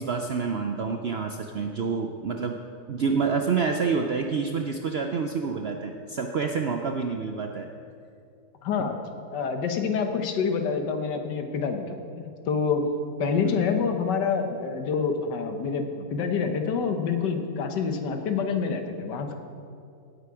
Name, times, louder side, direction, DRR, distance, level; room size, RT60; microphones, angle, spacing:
voice 1, 0.0-2.6 2.9-7.7 13.4-13.5, right 5 dB, 75° right, 4 dB, 0.5 m, -28 dB
voice 2, 8.6-9.0 9.3-12.9 13.2-19.3, left 5 dB, 90° left, 6 dB, 1.6 m, -27 dB
17.0 x 7.9 x 4.8 m, 2.5 s
omnidirectional pair, 1.8 m